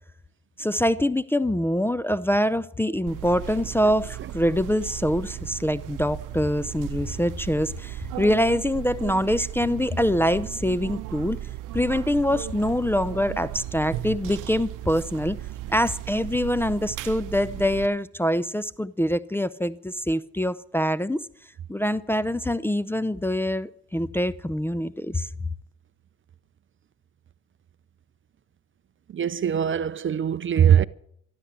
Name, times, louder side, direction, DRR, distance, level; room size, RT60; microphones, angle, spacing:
voice 1, 0.6-11.4 11.7-15.4 15.7-21.3 21.7-25.3, equal, 5° left, 0.6 m, -24 dB
sound 1, 3.1-17.9, right 14 dB, 75° right, 0.8 m, -36 dB
voice 2, 29.1-30.8, right 9 dB, 40° right, 0.6 m, -21 dB
13.0 x 13.0 x 7.6 m
supercardioid pair, 70°, 32 cm